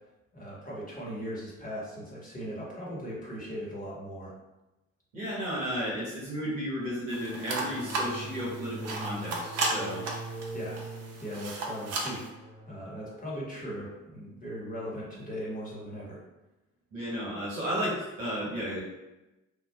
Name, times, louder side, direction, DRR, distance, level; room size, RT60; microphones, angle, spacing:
voice 1, 0.3-4.3 10.5-10.8 11.2-16.2, equal, 20° left, -6 dB, 1.2 m, -39 dB
voice 2, 5.1-10.2 16.9-18.9, equal, 85° right, -6 dB, 0.8 m, -33 dB
sound 1, 7.1-12.3, right 2 dB, 40° right, 0.6 m, -35 dB
sound 2, 7.2-15.4, right 2 dB, 75° left, 1.2 m, -44 dB
3.4 x 2.2 x 2.2 m, 1.0 s
figure-of-eight pair, 45°, 38 cm